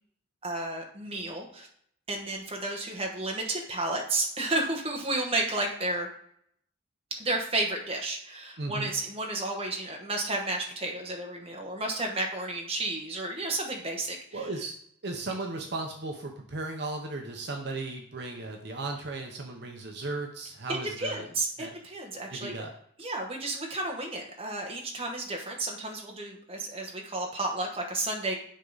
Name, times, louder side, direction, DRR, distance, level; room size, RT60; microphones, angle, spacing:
voice 1, 0.4-1.7 2.1-6.1 7.2-14.2 21.0-22.5 23.0-28.4, right 2 dB, 30° right, 1 dB, 1.1 m, -32 dB
voice 2, 8.6-8.9 14.3-14.8 15.0-21.3 21.6-21.7 22.3-22.7, right 2 dB, 55° right, 2 dB, 0.9 m, -36 dB
10.0 x 3.7 x 4.0 m, 0.66 s
head